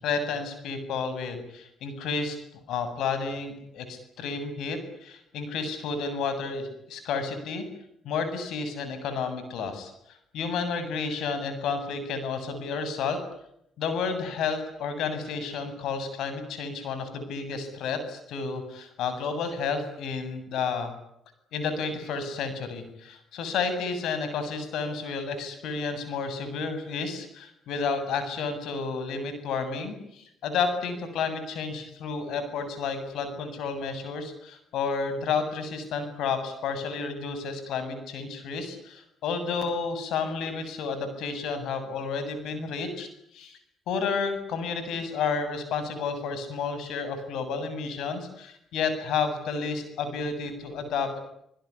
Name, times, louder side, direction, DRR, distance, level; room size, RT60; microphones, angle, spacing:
voice 1, 0.0-2.4 2.7-7.6 8.0-13.2 13.8-20.9 21.5-43.6 43.9-51.2, left 5 dB, 80° left, 10 dB, 7.8 m, -31 dB
28.0 x 21.0 x 9.9 m, 0.76 s
cardioid pair, 90°, 0 cm